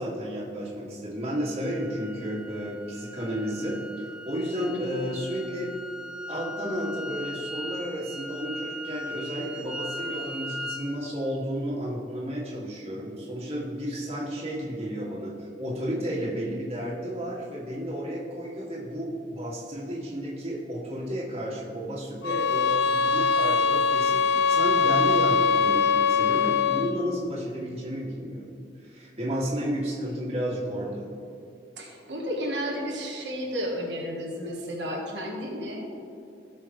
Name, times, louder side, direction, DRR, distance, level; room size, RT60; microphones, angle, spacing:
voice 1, 0.0-5.7 6.3-28.5 28.8-31.1, equal, 35° right, -6 dB, 2.3 m, -32 dB
sound 1, 1.2-10.9, left 1 dB, 5° right, 0.5 m, -39 dB
sound 2, 22.2-27.0, left 5 dB, 65° left, 0.4 m, -22 dB
voice 2, 31.8-35.9, equal, 80° right, -2 dB, 1.6 m, -32 dB
16.5 x 6.3 x 3.3 m, 2.6 s
head